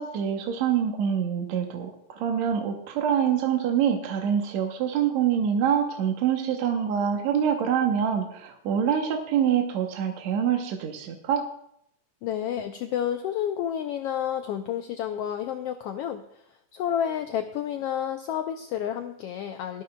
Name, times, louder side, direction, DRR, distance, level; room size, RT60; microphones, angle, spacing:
voice 1, 0.0-11.5, right 8 dB, 75° right, 3 dB, 2.1 m, -25 dB
voice 2, 12.2-16.2 16.7-19.8, left 9 dB, 90° left, 7 dB, 1.3 m, -30 dB
18.5 x 12.5 x 2.2 m, 0.74 s
omnidirectional pair, 3.3 m